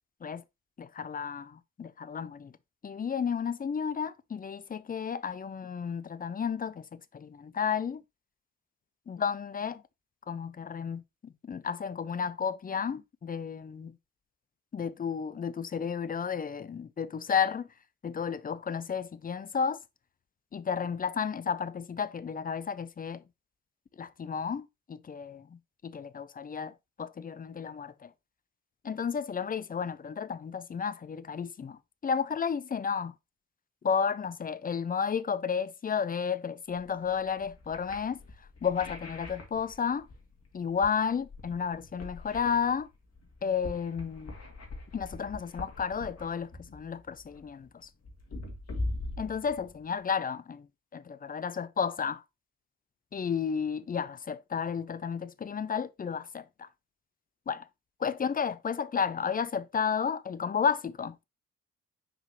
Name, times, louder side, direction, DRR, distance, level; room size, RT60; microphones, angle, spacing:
voice 1, 0.8-2.5 2.8-8.0 9.1-9.8 10.3-14.0 14.7-17.7 18.0-19.8 20.5-23.2 24.0-28.1 28.8-33.1 33.8-40.1 40.5-42.9 43.4-44.3 44.9-47.9 49.2-52.2 53.1-56.7 57.5-57.7 58.0-61.2, left 6 dB, 25° left, 0.5 m, -32 dB
sound 1, 36.7-50.1, left 2 dB, 40° left, 2.3 m, -42 dB
7.5 x 4.6 x 3.0 m
figure-of-eight pair, 45°, 38 cm